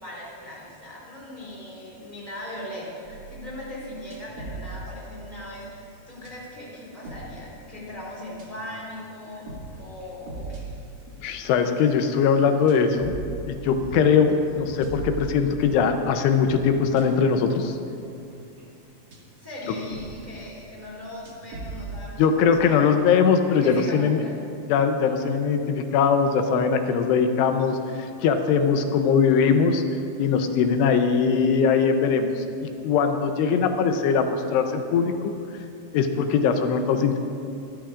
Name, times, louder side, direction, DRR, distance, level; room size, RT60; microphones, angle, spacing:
voice 1, 0.0-10.7 19.4-23.1 23.6-24.4, left 1 dB, 10° right, -6 dB, 2.8 m, -39 dB
sound 1, 3.0-6.3 6.8-19.2 19.6-22.1, right 2 dB, 40° right, 1.7 m, -40 dB
voice 2, 11.2-13.1 13.5-17.8 22.2-24.2 24.7-29.8 30.2-35.3 35.9-37.2, left 6 dB, 85° left, 6 dB, 2.9 m, -21 dB
24.5 x 11.5 x 2.5 m, 2.6 s
omnidirectional pair, 4.7 m